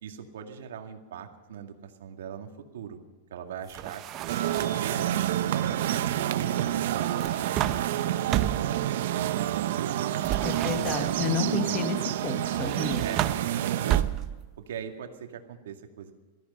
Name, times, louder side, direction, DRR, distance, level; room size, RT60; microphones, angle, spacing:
voice 1, 0.0-3.0 3.3-4.3 4.7-7.1 7.4-9.0 9.7-10.1 10.5-11.6 13.0-14.2 14.7-16.1, right 8 dB, 90° right, 4 dB, 2.1 m, -41 dB
sound 1, 3.7-5.0 6.9-8.8 10.2-11.4 12.6-14.5, right 12 dB, 30° right, 0.7 m, -32 dB
sound 2, 4.3-14.0, right 12 dB, 60° right, 0.8 m, -28 dB
voice 2, 10.4-13.0, left 6 dB, 25° left, 8 dB, 1.3 m, -31 dB
18.0 x 13.5 x 5.6 m, 1.3 s
supercardioid pair, 165°, 0 cm